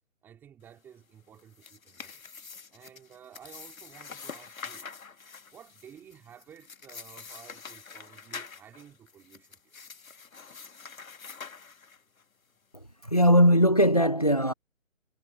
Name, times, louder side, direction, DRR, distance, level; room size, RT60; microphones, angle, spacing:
voice 1, 0.2-2.2 2.7-4.9 5.5-9.8, right 9 dB, 5° right, 3.1 m, -53 dB
sound 1, 1.3-12.2, left 5 dB, 80° left, 1.6 m, -46 dB
voice 2, 13.0-14.5, equal, 30° left, 0.5 m, -20 dB
hypercardioid pair, 170°, 41 cm